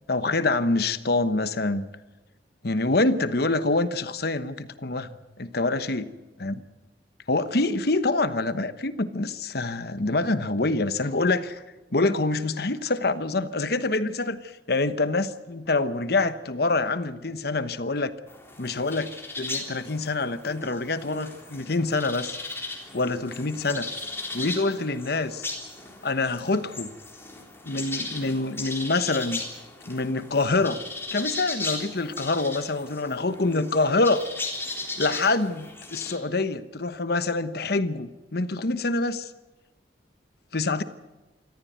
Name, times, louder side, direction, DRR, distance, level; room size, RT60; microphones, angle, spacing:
voice 1, 0.1-1.9 2.6-5.1 5.4-6.1 6.4-6.5 7.3-11.6 11.9-18.1 18.6-22.4 22.9-23.9 24.3-25.5 26.0-26.9 27.6-29.4 29.9-30.8 31.1-34.2 35.0-39.3 40.5-40.8, left 3 dB, 60° left, 12 dB, 1.1 m, -26 dB
sound 1, 18.3-36.2, left 3 dB, 15° left, 3.7 m, -37 dB
26.0 x 14.5 x 9.3 m, 1.1 s
head